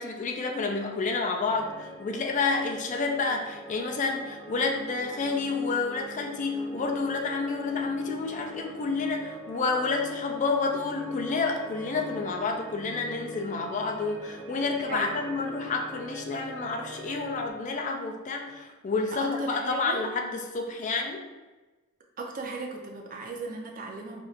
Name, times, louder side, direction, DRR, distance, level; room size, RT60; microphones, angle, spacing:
voice 1, 0.0-21.3, left 4 dB, 35° left, 2 dB, 0.3 m, -29 dB
sound 1, 1.5-17.5, right 1 dB, 5° left, 0.8 m, -44 dB
voice 2, 14.9-15.2 19.0-20.0 22.2-24.2, right 3 dB, 40° right, 1 dB, 0.5 m, -36 dB
4.4 x 2.5 x 2.4 m, 1.2 s
head